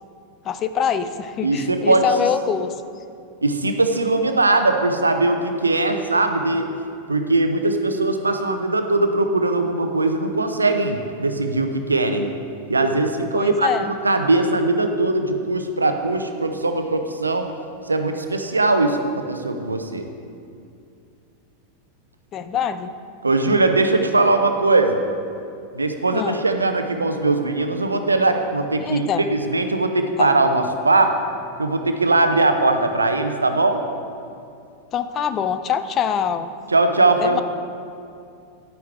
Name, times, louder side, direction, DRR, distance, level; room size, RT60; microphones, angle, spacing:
voice 1, 0.4-2.8 13.3-13.9 22.3-22.9 26.1-26.4 28.8-29.3 30.2-30.3 34.9-36.5 37.2-37.4, left 8 dB, 30° left, 11 dB, 0.4 m, -24 dB
voice 2, 1.4-2.1 3.4-6.7 7.1-12.3 12.7-13.7 14.0-17.5 17.9-20.0 23.2-25.0 25.7-31.1 31.6-33.8 36.7-37.4, right 2 dB, 80° right, 7 dB, 0.7 m, -20 dB
10.5 x 9.3 x 3.4 m, 2.5 s
figure-of-eight pair, 90°, 0 cm